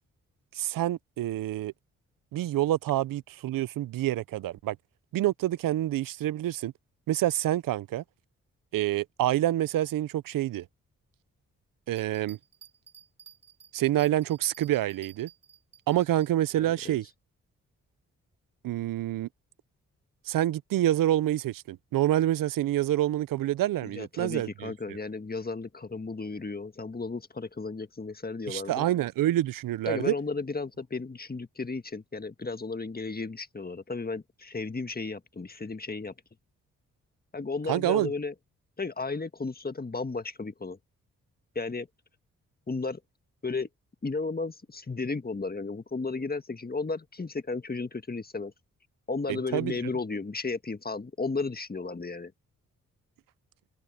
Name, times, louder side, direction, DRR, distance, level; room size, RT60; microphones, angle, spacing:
voice 1, 0.5-1.7 2.3-4.8 5.1-6.7 7.1-8.0 8.7-10.6 11.9-12.4 13.7-15.3 15.9-17.1 18.6-19.3 20.3-25.0 28.5-30.1 37.7-38.1 49.3-49.8, right 13 dB, 75° right, 0.9 m, -27 dB
Bell, 11.9-16.3 16.8-16.9, right 9 dB, 50° right, 5.0 m, -53 dB
voice 2, 16.5-17.0 23.8-28.9 29.9-36.1 37.3-38.3 38.8-40.8 41.5-41.9 42.7-43.0 43.4-43.7 44.0-48.5 49.1-52.3, left 3 dB, 30° left, 1.8 m, -34 dB
supercardioid pair, 40°, 33 cm